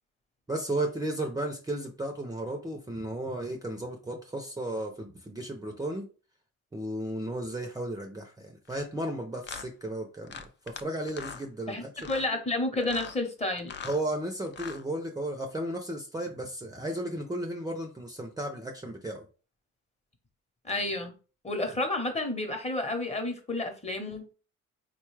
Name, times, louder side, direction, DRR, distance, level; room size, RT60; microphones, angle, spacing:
voice 1, 0.5-6.1 6.7-12.1 13.8-19.2, right 1 dB, 15° right, 0.5 m, -34 dB
sound 1, 8.7-8.9 9.4-9.7 10.3-10.8 11.1-11.4 12.0-12.3 12.8-13.2 13.6-14.0 14.5-14.8, left 6 dB, 40° left, 0.4 m, -41 dB
voice 2, 11.7-13.7 20.6-21.1 21.4-24.2, left 2 dB, 20° left, 0.9 m, -31 dB
3.9 x 2.3 x 3.2 m
cardioid pair, 90°, 30 cm